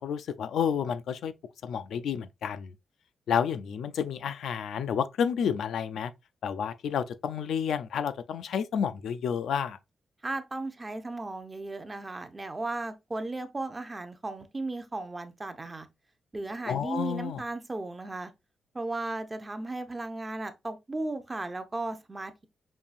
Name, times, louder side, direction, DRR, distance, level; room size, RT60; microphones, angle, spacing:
voice 1, 0.0-1.3 1.6-2.7 3.3-6.1 6.4-9.8 16.7-17.4, left 7 dB, 85° left, 0.3 m, -30 dB
voice 2, 10.2-15.9 16.3-18.3 18.7-22.5, right 2 dB, 20° right, 0.5 m, -35 dB
5.4 x 2.6 x 2.4 m
wide cardioid pair, 140°, 0 cm